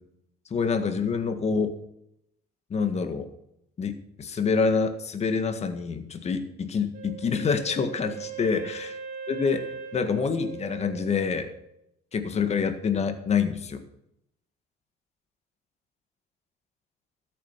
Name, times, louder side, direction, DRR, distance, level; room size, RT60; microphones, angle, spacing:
voice 1, 0.5-1.7 2.7-3.3 3.8-8.9 9.3-9.7 9.9-11.5 12.1-13.8, left 5 dB, 40° left, 8 dB, 1.8 m, -26 dB
Wind instrument woodwind instrument, 6.9-11.8, right 8 dB, 55° right, 2.0 m, -40 dB
13.5 x 8.6 x 5.8 m, 0.80 s
cardioid pair, 110°, 17 cm